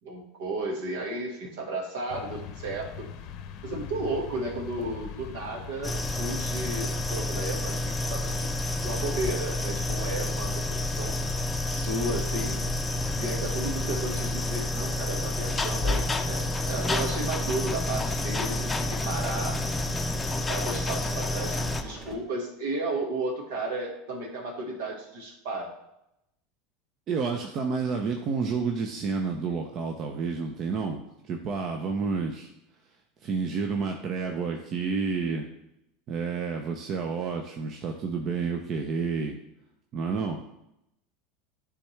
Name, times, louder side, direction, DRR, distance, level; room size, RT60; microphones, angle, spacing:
voice 1, 0.0-3.1 3.6-11.3 11.7-12.6 13.1-19.6 20.4-25.7, right 2 dB, 70° right, 0 dB, 1.7 m, -34 dB
sound 1, 2.1-14.6, left 8 dB, 55° left, 0.7 m, -42 dB
sound 2, 5.8-21.8, left 1 dB, 15° left, 0.6 m, -29 dB
sound 3, 12.6-22.1, right 1 dB, 25° right, 2.0 m, -43 dB
voice 2, 27.1-32.5 33.2-35.5 36.1-39.4 39.9-40.4, right 5 dB, 45° right, 3 dB, 0.7 m, -30 dB
9.9 x 3.6 x 3.3 m, 0.84 s
hypercardioid pair, 90°, 0 cm